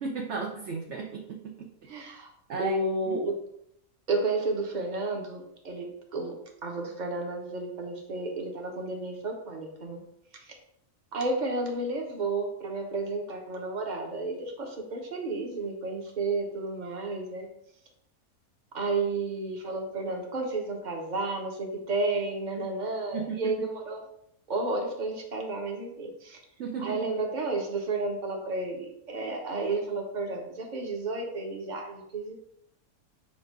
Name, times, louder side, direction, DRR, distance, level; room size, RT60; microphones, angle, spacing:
voice 1, 0.0-2.0 2.5-2.8 3.1-3.2 23.1-23.4 26.6-27.0, right 5 dB, 60° right, 1 dB, 0.8 m, -34 dB
voice 2, 1.9-2.3 2.6-3.3 4.1-6.4 6.6-10.0 10.3-10.5 11.1-17.5 18.7-24.0 24.5-26.4 26.8-32.4, right 2 dB, 35° right, 1 dB, 1.0 m, -32 dB
7.2 x 2.6 x 5.0 m, 0.74 s
omnidirectional pair, 1.6 m